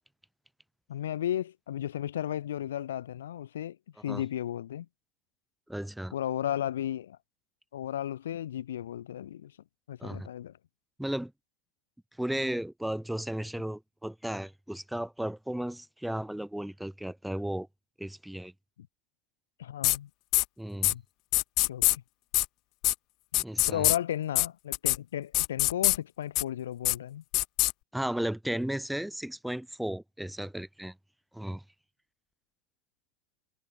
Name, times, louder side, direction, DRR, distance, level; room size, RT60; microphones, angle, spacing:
voice 1, 0.9-3.8 4.0-4.9 6.1-7.2 7.7-9.5 9.9-10.5 18.8-18.9 19.6-20.1 20.9-21.0 21.7-21.8 23.7-27.2, left 11 dB, 80° left, 3.2 m, -34 dB
voice 2, 5.7-6.1 10.0-10.3 11.0-11.3 12.2-17.7 18.0-18.5 20.6-20.9 23.3-23.9 27.9-30.9 31.3-31.6, right 1 dB, ahead, 3.5 m, -34 dB
sound 1, 19.8-20.0 20.3-20.4 20.8-20.9 21.3-22.0 22.3-22.5 22.8-22.9 23.3-24.0 24.4-24.5 24.7-25.0 25.3-26.0 26.4-26.5 26.8-27.0 27.3-27.7, left 21 dB, 50° left, 0.4 m, -24 dB
hypercardioid pair, 100°, 0 cm